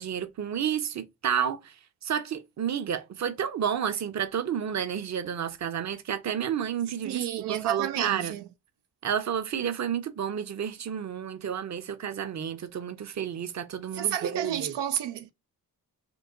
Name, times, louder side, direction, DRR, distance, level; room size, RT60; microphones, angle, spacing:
voice 1, 0.0-1.7 2.0-8.3 9.0-14.7, right 8 dB, 40° right, 0.7 m, -31 dB
voice 2, 7.0-8.4 13.9-15.3, right 11 dB, 80° right, 0.5 m, -31 dB
4.6 x 2.2 x 2.5 m
supercardioid pair, 55°, 41 cm